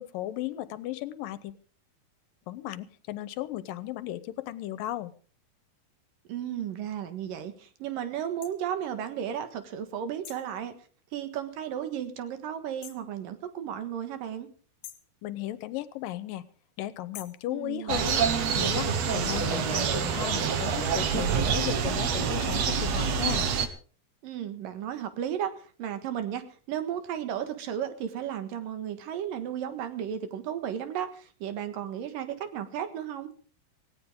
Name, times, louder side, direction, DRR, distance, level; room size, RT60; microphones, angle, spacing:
voice 1, 0.0-1.5 2.5-5.1 15.2-16.4 16.8-18.2 18.5-23.5, left 14 dB, 80° left, 15 dB, 2.5 m, -35 dB
voice 2, 6.3-10.7 11.1-14.5 17.5-18.1 24.2-33.3, right 9 dB, 75° right, 9 dB, 3.1 m, -34 dB
sound 1, 8.4-8.6 10.2-10.5 12.8-13.1 14.8-15.1 17.1-17.5, left 10 dB, 60° left, 2.5 m, -45 dB
sound 2, 17.9-23.7, right 6 dB, 60° right, 2.2 m, -27 dB
18.0 x 17.0 x 3.8 m, 0.40 s
omnidirectional pair, 4.0 m